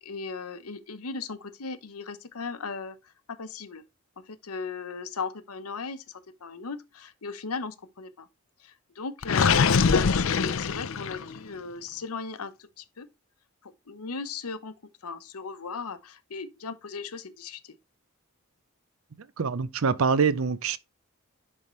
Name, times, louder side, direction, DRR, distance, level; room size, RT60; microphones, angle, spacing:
voice 1, 0.0-3.8 4.3-8.3 8.6-13.1 13.6-14.7 15.0-17.8, left 4 dB, 85° left, 0.8 m, -37 dB
Gurgling, 9.2-11.4, left 5 dB, 65° left, 0.5 m, -23 dB
voice 2, 19.4-20.8, right 5 dB, 65° right, 0.5 m, -24 dB
10.5 x 3.6 x 3.1 m
head